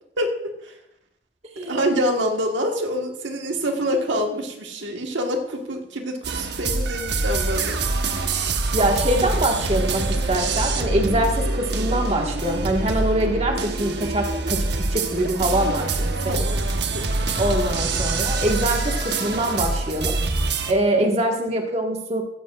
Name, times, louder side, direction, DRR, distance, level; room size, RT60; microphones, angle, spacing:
voice 1, 0.2-0.7 1.7-7.8 11.0-11.1 15.6-15.8 16.3-16.7 16.9-17.4 21.0-21.1, equal, 80° right, 3 dB, 1.5 m, -26 dB
voice 2, 1.5-1.8 8.7-16.4 17.4-20.2 20.7-22.2, right 1 dB, 35° right, 1 dB, 1.7 m, -24 dB
sound 1, 6.2-20.7, right 3 dB, 65° right, 1.1 m, -25 dB
15.5 x 14.5 x 2.5 m, 0.81 s
head